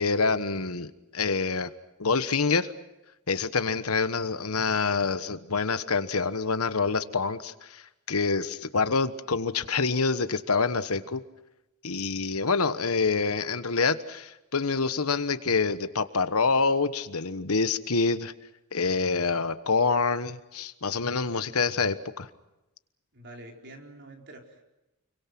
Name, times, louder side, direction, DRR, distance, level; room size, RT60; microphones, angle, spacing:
voice 1, 0.0-1.7 2.0-2.7 3.3-11.2 11.8-18.3 18.7-22.3, left 4 dB, 80° left, 12 dB, 1.3 m, -26 dB
voice 2, 23.1-24.6, right 1 dB, 50° right, 2 dB, 4.5 m, -46 dB
29.5 x 23.5 x 6.1 m, 0.95 s
head